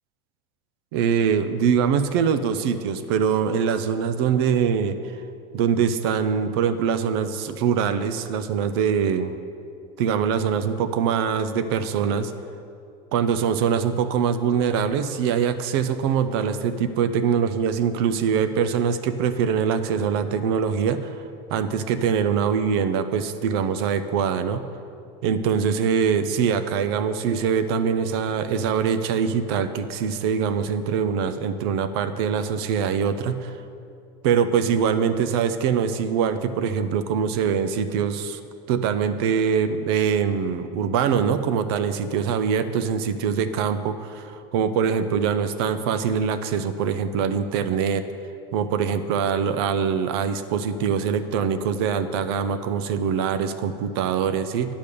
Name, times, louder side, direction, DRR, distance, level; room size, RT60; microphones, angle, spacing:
voice 1, 0.9-5.0 5.5-9.4 10.0-12.3 13.1-21.2 21.5-24.6 25.2-33.5 34.2-38.4 38.7-48.0 48.5-54.7, right 7 dB, 80° right, 11 dB, 0.6 m, -23 dB
10.0 x 5.1 x 6.8 m, 2.5 s
supercardioid pair, 135°, 13 cm